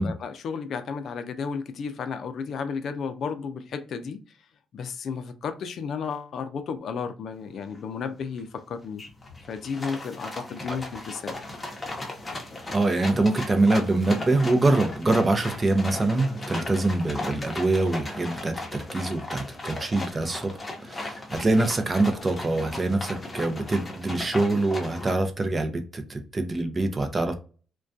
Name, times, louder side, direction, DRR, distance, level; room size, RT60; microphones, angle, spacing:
voice 1, 0.0-4.2 4.7-9.0 9.5-11.4, left 6 dB, 60° left, 0.4 m, -33 dB
sound 1, 7.7-7.8 8.2-8.6 9.0-25.1, left 2 dB, 25° left, 0.8 m, -37 dB
voice 2, 12.7-20.5 20.8-27.3, right 2 dB, 30° right, 0.5 m, -24 dB
2.3 x 2.2 x 2.5 m
cardioid pair, 90°, 0 cm